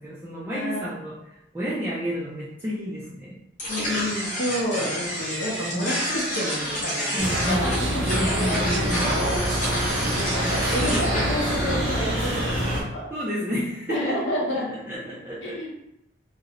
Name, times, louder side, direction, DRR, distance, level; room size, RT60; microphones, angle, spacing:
voice 1, 0.0-3.4 5.7-5.9 7.1-7.7 8.1-10.2 13.1-14.2 14.5-15.7, equal, 10° right, -8 dB, 0.3 m, -31 dB
voice 2, 0.5-1.0 3.7-8.0 9.2-9.4 10.2-13.1 13.9-14.7 15.4-15.7, equal, 65° left, -3 dB, 0.6 m, -30 dB
sound 1, 3.6-12.8, equal, 35° left, 1.0 m, -29 dB
sound 2, 7.2-12.8, equal, 80° right, 0.6 m, -26 dB
2.4 x 2.0 x 2.8 m, 0.84 s
head